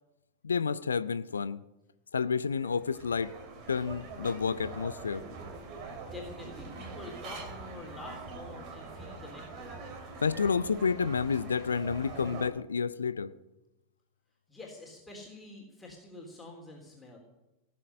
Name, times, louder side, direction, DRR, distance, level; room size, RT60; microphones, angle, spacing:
voice 1, 0.4-1.6 2.1-3.3 3.7-5.2 10.2-13.3, left 5 dB, 75° left, 0.5 m, -30 dB
sound 1, 2.2-12.5, right 3 dB, 40° right, 3.1 m, -44 dB
voice 2, 6.0-9.7 14.5-17.2, left 2 dB, 10° left, 3.5 m, -47 dB
18.0 x 7.6 x 9.9 m
figure-of-eight pair, 90°, 0 cm